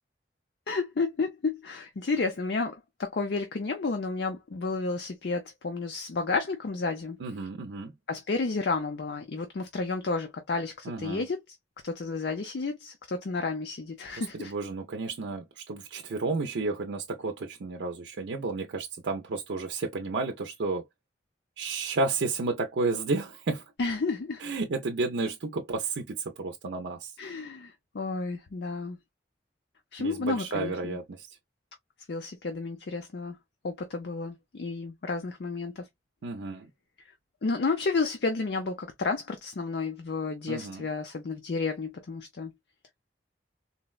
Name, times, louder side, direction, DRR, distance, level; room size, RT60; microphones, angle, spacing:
voice 1, 0.7-7.2 8.1-11.6 11.8-14.5 23.8-24.4 27.2-29.0 29.9-31.0 32.1-33.4 33.6-35.9 37.4-42.5, left 3 dB, 65° left, 0.5 m, -31 dB
voice 2, 7.2-7.9 10.9-11.2 14.2-20.8 21.6-23.6 24.4-27.1 30.0-31.3 36.2-36.7 40.5-40.8, right 3 dB, 75° right, 0.5 m, -32 dB
3.9 x 2.1 x 2.3 m
head